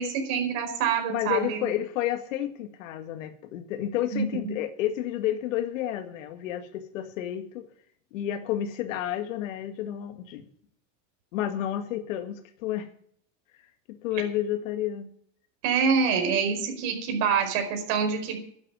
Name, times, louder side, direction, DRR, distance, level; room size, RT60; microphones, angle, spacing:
voice 1, 0.0-1.6 4.1-4.5 15.6-18.4, right 6 dB, 50° right, 4.9 m, -26 dB
voice 2, 1.1-7.7 8.1-10.5 11.3-12.9 13.9-15.1 16.1-16.3, left 11 dB, 85° left, 2.0 m, -31 dB
12.5 x 8.8 x 9.0 m
supercardioid pair, 165°, 39 cm